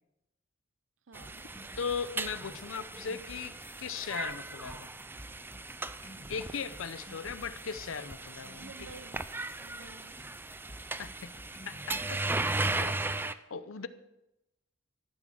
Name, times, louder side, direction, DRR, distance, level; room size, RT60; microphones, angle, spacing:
sound 1, 1.1-13.3, right 2 dB, 10° right, 0.4 m, -37 dB
voice 1, 1.1-1.4 8.5-9.3 9.6-10.2 12.7-13.0 13.7-13.9, right 4 dB, 75° right, 12 dB, 0.8 m, -52 dB
sound 2, 1.2-12.1, left 1 dB, 30° left, 1.9 m, -52 dB
voice 2, 1.8-4.9 6.3-8.9 11.0-11.4 11.7-12.2 12.6-12.9 13.5-13.9, left 6 dB, 85° left, 14 dB, 0.7 m, -38 dB
14.5 x 6.2 x 7.2 m, 0.93 s
head